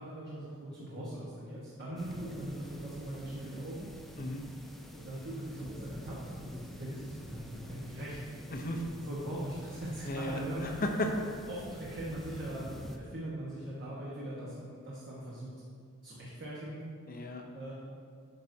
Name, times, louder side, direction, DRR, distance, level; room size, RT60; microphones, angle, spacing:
voice 1, 0.0-3.9 4.7-8.2 8.9-10.7 11.5-15.5 16.0-16.9 17.5-17.7, right 1 dB, 50° right, -7 dB, 1.3 m, -41 dB
sound 1, 2.0-13.0, equal, ahead, 0.5 m, -48 dB
voice 2, 8.5-8.8 10.1-11.1 17.1-17.5, left 1 dB, 40° left, 3 dB, 0.7 m, -35 dB
9.5 x 6.0 x 2.7 m, 2.1 s
head